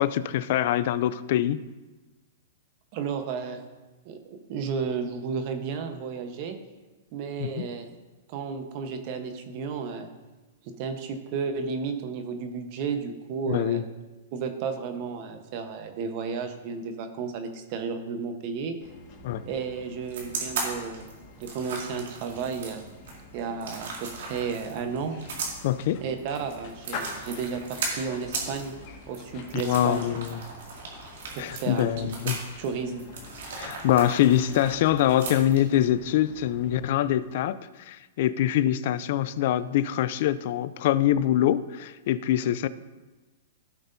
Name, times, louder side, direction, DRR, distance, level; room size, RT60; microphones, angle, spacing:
voice 1, 0.0-1.6 7.4-7.7 13.5-13.8 19.2-19.4 25.6-26.0 29.5-30.4 31.4-32.4 33.6-42.7, left 12 dB, 55° left, 15 dB, 0.4 m, -24 dB
voice 2, 2.9-3.6 4.0-6.6 7.1-7.9 8.3-10.1 10.6-13.8 14.3-18.8 19.4-21.1 21.4-22.8 23.3-25.2 26.0-28.7 29.1-30.1 31.3-32.1 32.6-33.0, right 5 dB, 45° right, 7 dB, 1.1 m, -33 dB
sound 1, 18.8-37.4, left 3 dB, 40° left, 1.7 m, -46 dB
sound 2, 20.1-35.8, right 4 dB, 75° right, 2.3 m, -37 dB
15.5 x 5.9 x 2.7 m, 1.2 s
hypercardioid pair, 135°, 0 cm